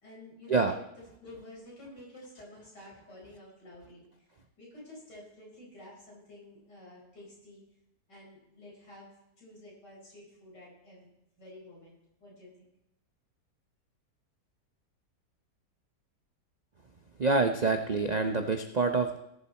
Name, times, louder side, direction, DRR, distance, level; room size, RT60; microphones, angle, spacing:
voice 1, 0.0-0.8 1.2-4.1 4.6-7.6 8.1-9.1 9.4-11.1 11.4-12.7, left 1 dB, 85° left, -4 dB, 5.2 m, -50 dB
voice 2, 17.2-19.2, right 3 dB, 80° right, 7 dB, 0.3 m, -26 dB
18.0 x 7.4 x 4.2 m, 0.84 s
omnidirectional pair, 1.8 m